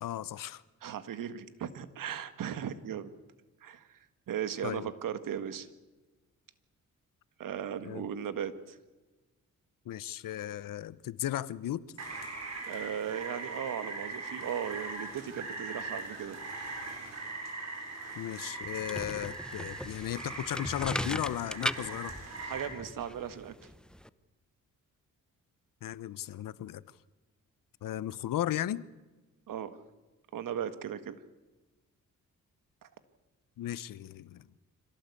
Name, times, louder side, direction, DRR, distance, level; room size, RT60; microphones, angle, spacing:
voice 1, 0.0-0.6 4.6-4.9 7.8-8.0 9.8-11.9 18.2-22.1 25.8-26.8 27.8-28.8 33.6-34.5, left 12 dB, 75° left, 18 dB, 0.9 m, -35 dB
voice 2, 0.8-3.1 3.6-4.0 4.3-5.7 7.4-8.8 12.7-16.4 22.4-23.5 29.5-29.8 30.3-31.2 32.8-32.9, right 9 dB, 75° right, 12 dB, 1.8 m, -37 dB
Rain, 12.0-22.7, right 3 dB, 55° right, 7.1 m, -41 dB
sound 1, 18.6-24.1, equal, ahead, 0.9 m, -39 dB
26.0 x 17.5 x 8.4 m, 1.2 s
cardioid pair, 85°, 33 cm